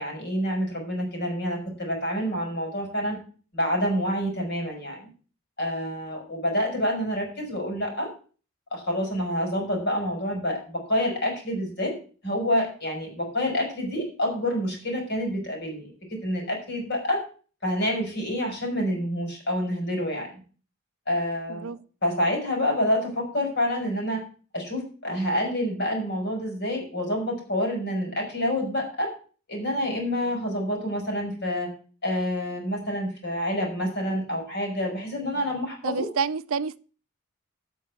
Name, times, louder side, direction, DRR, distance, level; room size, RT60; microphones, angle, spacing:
voice 1, 0.0-3.2 3.5-5.1 5.6-8.1 8.7-11.9 12.2-17.2 17.6-20.3 21.1-21.7 22.0-24.2 24.5-29.1 29.5-31.7 32.0-36.1, left 1 dB, 50° left, 4.9 m, -27 dB
voice 2, 35.8-36.8, right 5 dB, 65° right, 0.5 m, -28 dB
8.4 x 6.8 x 8.2 m
head